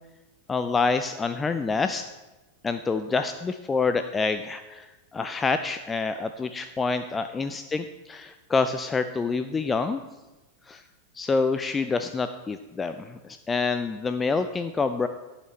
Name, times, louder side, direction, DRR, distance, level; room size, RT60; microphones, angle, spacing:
voice 1, 0.5-2.1 2.6-10.0 10.7-10.8 11.1-15.1, left 4 dB, 15° left, 9 dB, 0.4 m, -27 dB
16.0 x 5.7 x 3.2 m, 1.1 s
figure-of-eight pair, 90°, 0 cm